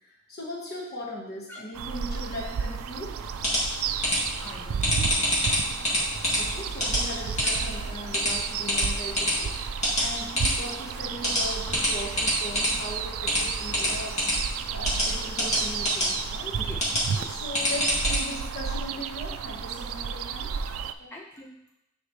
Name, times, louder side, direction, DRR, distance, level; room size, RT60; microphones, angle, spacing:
voice 1, 0.0-3.2 6.3-14.4 14.7-16.6 17.1-20.5 21.0-21.1, left 1 dB, 50° left, -4 dB, 1.4 m, -39 dB
sound 1, 1.7-20.9, right 7 dB, 85° right, 0.3 m, -33 dB
sound 2, 3.2-18.2, equal, 35° left, 2.0 m, -28 dB
voice 2, 4.4-5.4 11.7-11.9 16.6-16.8 17.1-17.3 21.1-21.5, left 1 dB, 10° left, -2 dB, 0.4 m, -42 dB
9.4 x 4.0 x 3.2 m, 0.83 s
head